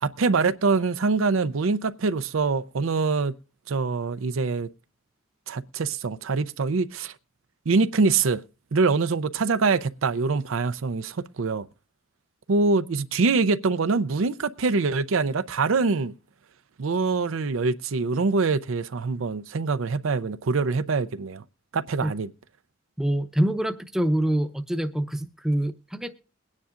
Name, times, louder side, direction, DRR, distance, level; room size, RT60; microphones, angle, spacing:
voice 1, 0.0-3.3 3.7-4.7 5.5-7.1 7.7-8.4 8.7-11.7 12.5-16.1 16.8-21.4 21.7-22.3, right 4 dB, 80° right, 0.5 m, -24 dB
voice 2, 23.0-26.1, right 1 dB, ahead, 0.6 m, -25 dB
22.0 x 9.7 x 2.5 m
head